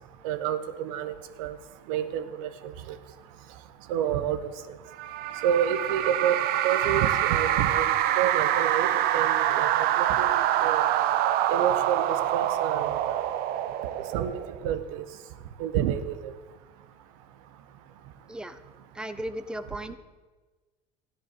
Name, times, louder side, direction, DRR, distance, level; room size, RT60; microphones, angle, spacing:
voice 1, 0.2-1.6 1.9-3.0 3.9-4.4 4.7-4.8 5.4-6.4 6.6-8.9 9.1-9.7 10.0-10.3 10.6-10.8 11.5-12.0 12.3-13.2 14.1-14.3 14.6-15.0 15.6-16.3, right 9 dB, 90° right, 10 dB, 1.1 m, -28 dB
sound 1, 5.0-14.7, right 12 dB, 65° right, 0.8 m, -25 dB
voice 2, 19.0-20.0, right 1 dB, 5° right, 10 dB, 0.9 m, -35 dB
13.5 x 10.5 x 6.7 m, 1.3 s
supercardioid pair, 105°, 17 cm